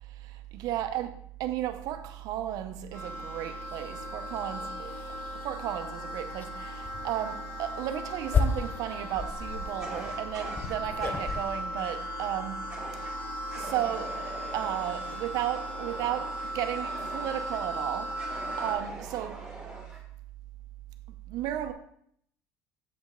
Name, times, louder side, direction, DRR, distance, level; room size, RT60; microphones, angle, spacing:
voice 1, 0.0-4.9 5.4-13.1 13.5-14.3 14.5-19.5 21.3-21.7, right 12 dB, 70° right, 0.7 m, -34 dB
sound 1, 2.9-18.8, equal, 90° left, 2.5 m, -38 dB
sound 2, 4.0-4.1 4.6-4.7 5.1-5.5 6.3-6.5 6.8-7.1 7.7-11.4, left 5 dB, 25° left, 0.6 m, -32 dB
Fire, 9.8-11.4 12.7-13.1 13.5-17.6 18.2-20.0, right 2 dB, 10° right, 1.9 m, -44 dB
7.0 x 5.2 x 3.6 m
cardioid pair, 115°, 7 cm